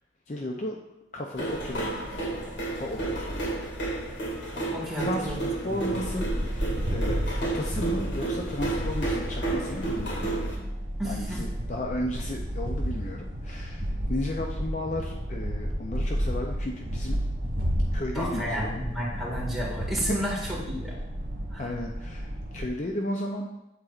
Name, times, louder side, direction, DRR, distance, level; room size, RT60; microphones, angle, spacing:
voice 1, 0.3-0.8 1.1-2.0 2.7-3.6 4.5-4.7 5.0-10.3 11.0-17.2 17.9-18.8 20.1-20.5 21.6-23.5, left 1 dB, 40° left, 1 dB, 0.5 m, -34 dB
sound 1, 1.4-10.5, right 2 dB, 80° left, 2.0 m, -31 dB
voice 2, 4.7-5.8 11.0-11.4 18.1-21.0 21.5-21.7, equal, ahead, -5 dB, 1.8 m, -32 dB
sound 2, 6.0-22.7, equal, 65° right, 1.6 m, -32 dB
8.2 x 7.7 x 2.4 m, 0.90 s
head